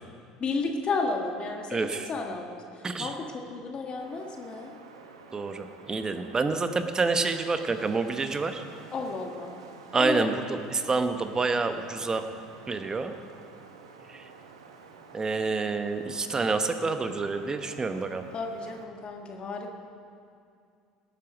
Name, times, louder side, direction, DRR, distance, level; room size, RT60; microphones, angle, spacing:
voice 1, 0.4-4.7 8.9-9.5 10.0-10.3 17.7-17.8 18.3-19.7, left 3 dB, 40° left, 2 dB, 1.6 m, -33 dB
voice 2, 1.7-2.0 2.8-3.1 5.3-8.6 9.9-12.3 12.7-13.1 14.1-14.3 15.1-18.2, right 4 dB, 25° right, 8 dB, 1.0 m, -28 dB
Wind, 4.0-18.8, right 5 dB, 85° right, 1.0 m, -49 dB
18.0 x 8.9 x 5.1 m, 2.4 s
hypercardioid pair, 70°, 3 cm